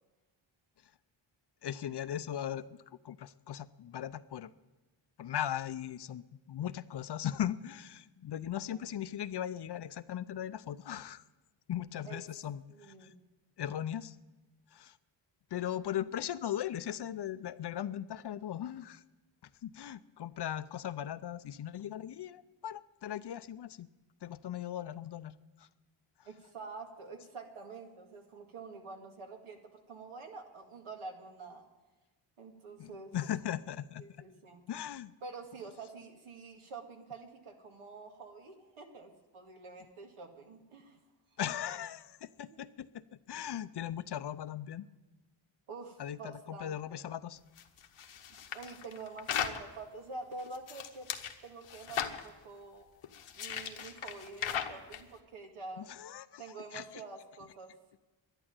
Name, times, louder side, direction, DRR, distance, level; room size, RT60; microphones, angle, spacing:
voice 1, 1.6-4.5 5.2-11.2 11.7-13.1 13.6-14.2 14.7-15.0 15.5-19.0 19.6-23.9 24.2-25.7 32.8-34.0 34.7-35.1 41.4-44.9 46.0-47.4 55.8-57.0, left 10 dB, 55° left, 15 dB, 0.6 m, -38 dB
voice 2, 12.7-13.1 26.2-31.7 32.4-33.1 34.0-34.6 35.2-41.0 42.5-42.7 45.7-47.0 48.3-51.1 51.4-52.9 53.4-55.9 56.4-57.7, right 3 dB, 90° right, 3 dB, 2.1 m, -47 dB
sound 1, 47.6-49.6 50.3-51.3 51.6-52.2 53.0-55.0, left 9 dB, 80° left, 1.2 m, -37 dB
11.5 x 10.5 x 8.9 m, 1.2 s
wide cardioid pair, 100°, 49 cm